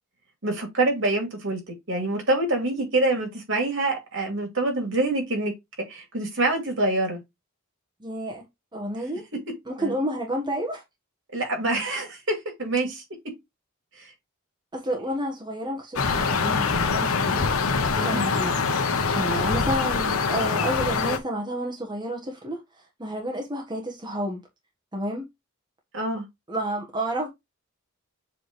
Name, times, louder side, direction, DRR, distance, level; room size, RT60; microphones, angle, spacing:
voice 1, 0.4-1.6 1.9-5.5 5.9-7.2 9.8-10.0 11.3-13.0 14.0-14.1 17.9-18.2 25.9-26.2, right 2 dB, 65° right, 2.9 m, -26 dB
voice 2, 8.0-8.4 8.7-9.3 9.7-10.8 14.7-17.5 17.9-18.6 18.8-22.6 23.0-24.4 24.9-25.3 26.5-27.3, equal, 20° right, 1.4 m, -30 dB
sound 1, 16.0-21.2, left 4 dB, 85° left, 1.1 m, -24 dB
7.4 x 4.0 x 3.2 m
head